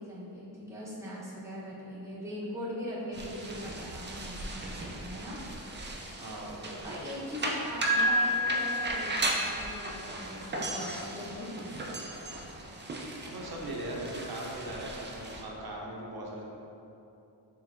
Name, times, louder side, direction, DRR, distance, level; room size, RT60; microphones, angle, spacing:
voice 1, 0.0-5.4 6.8-11.8, equal, 5° right, -8 dB, 0.8 m, -40 dB
sound 1, 3.1-15.4, right 2 dB, 30° right, 0.4 m, -37 dB
voice 2, 6.2-6.9 13.3-16.4, right 1 dB, 60° right, -2 dB, 0.7 m, -39 dB
Piano, 7.8-9.7, equal, 75° left, 1.0 m, -29 dB
4.2 x 3.2 x 2.5 m, 2.8 s
wide cardioid pair, 85°, 43 cm